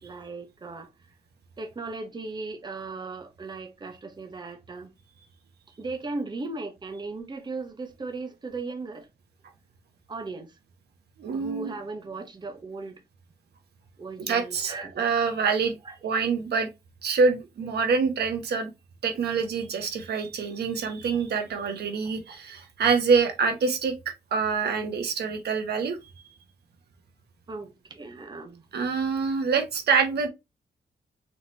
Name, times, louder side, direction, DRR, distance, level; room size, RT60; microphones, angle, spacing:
voice 1, 0.0-0.9 1.6-4.9 5.8-9.1 10.1-10.5 11.3-13.0 14.0-14.9 15.4-15.5 15.8-16.0 27.5-28.6, right 3 dB, 25° right, 0.9 m, -37 dB
voice 2, 11.2-11.7 14.3-15.7 16.0-16.7 17.0-18.7 19.0-23.9 24.3-26.0 28.7-30.3, right 5 dB, 85° right, 1.3 m, -25 dB
4.2 x 4.1 x 2.8 m
wide cardioid pair, 145°, 17 cm